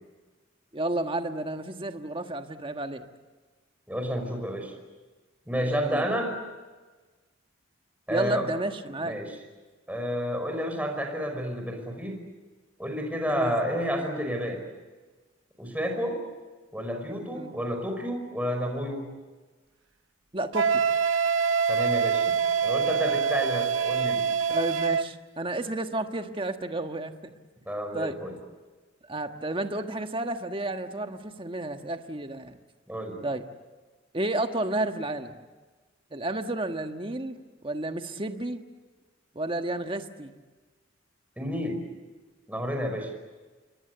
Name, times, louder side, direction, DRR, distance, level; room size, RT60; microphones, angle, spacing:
voice 1, 0.7-3.1 5.6-6.1 8.1-9.2 13.3-13.5 17.3-17.5 20.3-20.8 24.5-27.3 27.9-28.1 29.1-32.6 33.2-33.4 34.1-35.4 36.1-38.6 39.3-40.3, right 2 dB, 25° right, 6 dB, 1.4 m, -31 dB
voice 2, 3.9-4.7 5.5-6.3 8.1-8.5 9.0-9.4 9.9-12.2 12.8-14.6 15.6-16.2 16.7-19.1 21.7-22.3 22.6-24.3 27.7-28.4 32.9-33.2 41.4-41.8 42.5-43.1, equal, 10° right, 4 dB, 5.3 m, -30 dB
Wind instrument woodwind instrument, 20.5-25.1, right 6 dB, 80° right, 0.7 m, -25 dB
27.5 x 23.0 x 8.0 m, 1.3 s
head